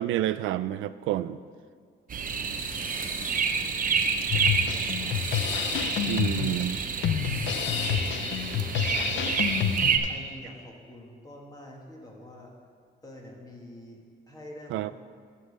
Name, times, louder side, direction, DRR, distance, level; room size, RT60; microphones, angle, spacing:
voice 1, 0.0-1.4 6.1-6.8 14.7-14.9, right 13 dB, 85° right, 15 dB, 0.4 m, -29 dB
sound 1, 2.1-10.0, right 6 dB, 45° right, 0.8 m, -29 dB
sound 2, 2.2-3.5 4.8-5.9 7.0-8.1, left 3 dB, 45° left, 1.6 m, -42 dB
voice 2, 3.4-4.2 4.7-5.8 6.3-6.7 7.2-9.6 10.1-12.5 13.0-14.9, left 1 dB, 20° left, -2 dB, 2.3 m, -47 dB
Drum kit, 4.3-10.3, left 9 dB, 70° left, 0.6 m, -29 dB
11.5 x 5.6 x 6.6 m, 2.1 s
cardioid pair, 90°, 20 cm